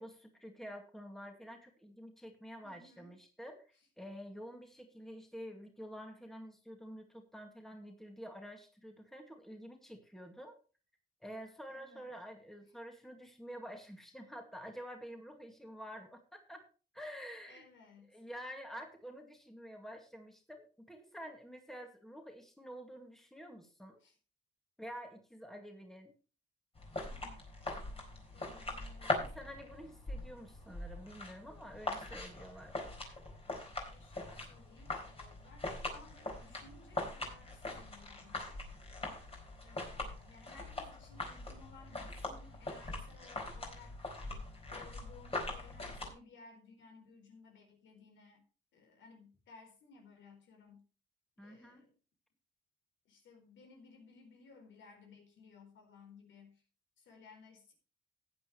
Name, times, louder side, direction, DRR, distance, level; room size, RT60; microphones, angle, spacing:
voice 1, 0.0-10.6 11.2-16.7 16.9-17.7 18.1-24.0 24.8-26.1 29.2-32.8 33.1-33.2 51.4-51.9, equal, ahead, 3 dB, 2.1 m, -49 dB
voice 2, 2.6-3.1 11.7-12.0 17.5-18.2 24.0-24.2 27.1-27.4 28.3-29.3 33.9-38.6 39.6-44.1 44.7-48.4 48.7-50.8 51.4-51.9 53.0-56.6 57.0-57.7, left 4 dB, 75° left, 3 dB, 4.2 m, -59 dB
sound 1, 26.8-46.1, left 2 dB, 30° left, 4.1 m, -42 dB
15.0 x 9.2 x 3.1 m, 0.35 s
cardioid pair, 90°, 20 cm